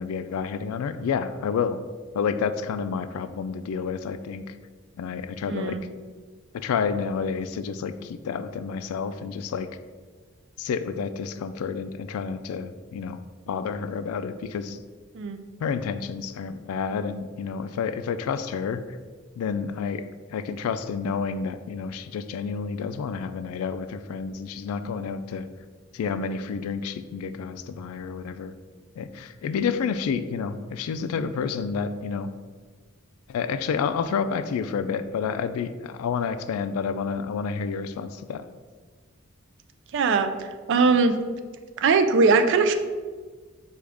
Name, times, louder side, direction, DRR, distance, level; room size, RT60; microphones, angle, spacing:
voice 1, 0.0-1.8 2.1-4.4 5.0-5.8 6.5-9.7 10.6-13.2 13.5-14.8 15.6-18.8 19.4-20.0 20.3-25.5 25.9-28.5 29.0-32.3 33.3-38.4, left 6 dB, 90° left, 11 dB, 0.3 m, -29 dB
voice 2, 5.5-5.8 15.1-15.4 39.9-41.2 41.8-42.7, right 4 dB, 60° right, 8 dB, 0.4 m, -21 dB
6.2 x 2.4 x 3.4 m, 1.5 s
head